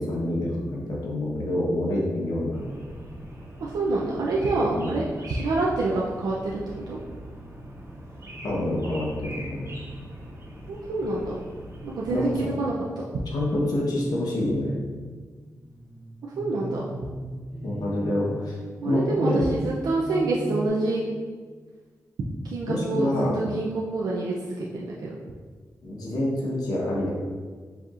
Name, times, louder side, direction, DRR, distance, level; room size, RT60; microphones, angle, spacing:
voice 1, 0.0-2.6 4.7-4.9 8.4-9.7 12.1-12.5 13.3-14.7 17.6-18.6 18.8-19.5 22.7-23.4 25.8-27.1, left 1 dB, 75° left, -4 dB, 1.0 m, -27 dB
sound 1, 2.5-12.5, right 1 dB, 40° right, 1.1 m, -41 dB
voice 2, 3.6-6.6 6.9-7.0 10.7-11.4 11.8-13.0 16.2-16.9 18.8-21.1 22.4-25.1, right 2 dB, 85° right, -4 dB, 0.5 m, -27 dB
sound 2, 15.4-20.7, equal, 10° right, 0.8 m, -36 dB
6.8 x 2.9 x 2.5 m, 1.5 s
cardioid pair, 65°, 7 cm